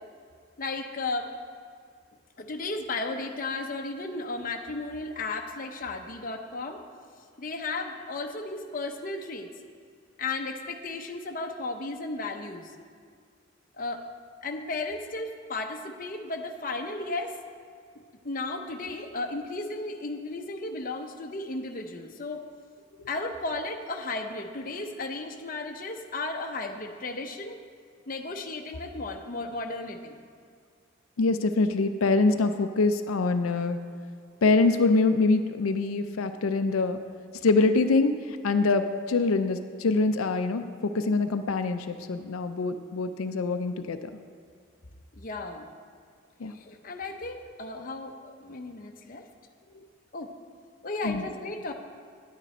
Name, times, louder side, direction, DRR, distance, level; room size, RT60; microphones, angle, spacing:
voice 1, 0.6-1.3 2.4-6.8 7.4-9.5 10.2-12.7 13.8-14.0 14.4-17.4 18.2-22.4 23.1-27.6 28.1-30.2 45.2-45.7 46.5-49.2 50.1-50.3 50.8-51.7, left 3 dB, 40° left, 4 dB, 0.7 m, -34 dB
voice 2, 31.2-33.8 34.4-37.0 37.4-44.1 46.4-46.5 51.0-51.2, left 3 dB, 90° left, 8 dB, 0.5 m, -24 dB
10.0 x 9.1 x 4.3 m, 2.1 s
head